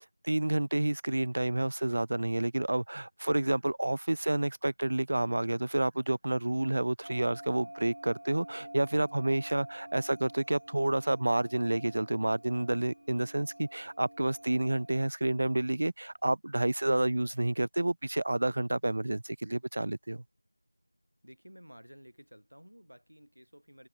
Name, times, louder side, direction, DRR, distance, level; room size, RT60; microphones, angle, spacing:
voice 1, 0.2-20.2, right 1 dB, 35° right, 0.3 m, -29 dB
sound 1, 7.0-15.1, right 1 dB, 60° right, 1.2 m, -48 dB
voice 2, 21.2-23.9, equal, 75° right, 4.4 m, -53 dB
figure-of-eight pair, 175°, 0 cm